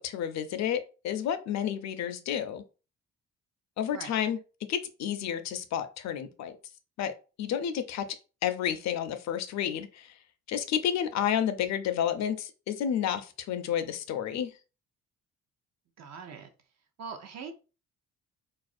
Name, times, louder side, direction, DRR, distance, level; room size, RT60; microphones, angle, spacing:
voice 1, 0.0-2.6 3.8-4.4 4.7-6.6 7.0-7.1 7.4-8.1 8.4-10.1 10.5-14.5, left 9 dB, 65° left, 10 dB, 0.4 m, -30 dB
voice 2, 16.0-16.5 17.0-17.5, right 6 dB, 60° right, 5 dB, 0.6 m, -42 dB
2.4 x 2.0 x 2.5 m, 0.33 s
cardioid pair, 90°, 30 cm